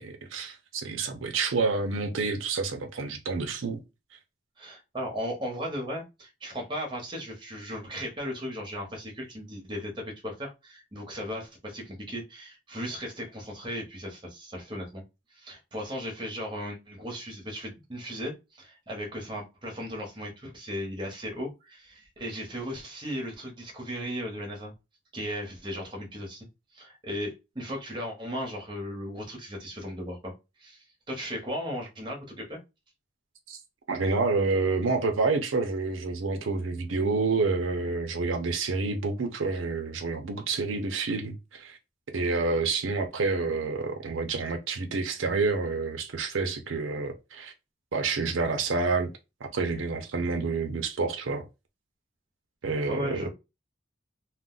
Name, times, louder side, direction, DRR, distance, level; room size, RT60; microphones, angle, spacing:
voice 1, 0.0-3.8 33.5-33.6 33.9-41.8 42.1-47.5 47.9-49.1 49.4-51.4 52.6-53.3, right 4 dB, 90° right, 0.6 m, -28 dB
voice 2, 4.6-15.0 15.3-24.7 25.1-26.5 26.7-30.3 30.6-32.6 52.9-53.3, equal, 25° right, 0.9 m, -36 dB
2.5 x 2.1 x 3.7 m
head